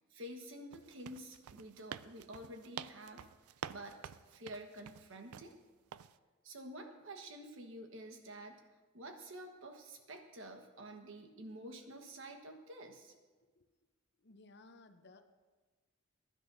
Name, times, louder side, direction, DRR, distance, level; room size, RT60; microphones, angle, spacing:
voice 1, 0.1-3.3 3.7-4.0 4.3-5.6 6.4-8.6 8.9-13.1, right 1 dB, 60° right, 4 dB, 1.3 m, -49 dB
sound 1, 0.7-5.5 5.9-6.2, right 9 dB, 90° right, 0.4 m, -48 dB
voice 2, 14.2-15.3, left 2 dB, 50° left, 8 dB, 0.7 m, -59 dB
21.5 x 11.0 x 2.7 m, 1.3 s
head